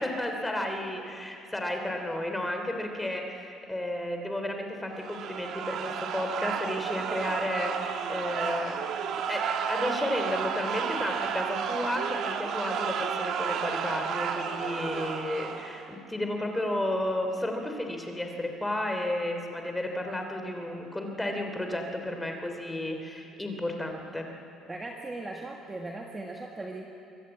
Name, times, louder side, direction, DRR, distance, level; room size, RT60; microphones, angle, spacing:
voice 1, 0.0-8.8 9.3-24.3, left 1 dB, 5° left, 4 dB, 3.0 m, -32 dB
sound 1, 5.0-15.9, right 7 dB, 55° right, 1.7 m, -32 dB
voice 2, 24.7-26.9, right 2 dB, 15° right, 1 dB, 1.6 m, -38 dB
25.0 x 23.0 x 8.8 m, 2.6 s
cardioid pair, 150°, 0 cm